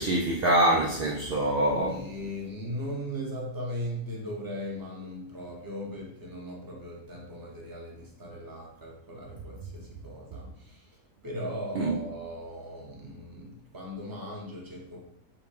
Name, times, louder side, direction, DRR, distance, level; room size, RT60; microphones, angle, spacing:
voice 1, 0.0-2.0 11.8-12.0, right 1 dB, 65° right, -1 dB, 0.6 m, -25 dB
voice 2, 1.9-11.0 11.2-15.0, equal, 15° right, -2 dB, 0.8 m, -38 dB
5.0 x 2.2 x 4.9 m, 0.75 s
omnidirectional pair, 1.6 m